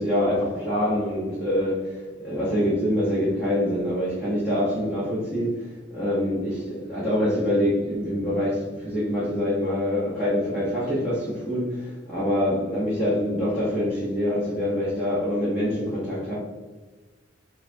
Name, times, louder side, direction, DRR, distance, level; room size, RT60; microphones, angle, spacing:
voice 1, 0.0-1.9 2.2-16.3, equal, 5° right, -11 dB, 1.0 m, -25 dB
4.8 x 2.3 x 2.7 m, 1.3 s
head